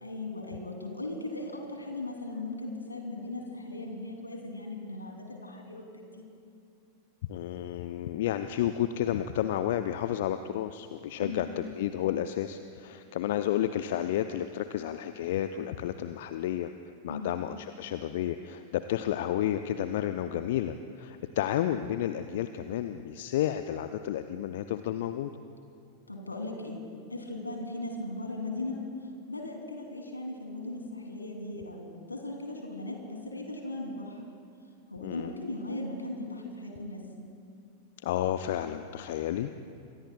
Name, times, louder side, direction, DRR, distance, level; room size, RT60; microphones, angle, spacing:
voice 1, 0.0-6.3 11.2-11.4 17.1-17.3 26.1-26.8 27.1-28.8 29.3-34.2 34.9-37.0, left 2 dB, 80° left, 1 dB, 2.9 m, -38 dB
voice 2, 7.3-16.7 17.0-25.3 35.0-35.3 38.0-39.6, left 11 dB, 55° left, 10 dB, 0.5 m, -31 dB
27.0 x 22.0 x 2.3 m, 2.6 s
figure-of-eight pair, 90°, 0 cm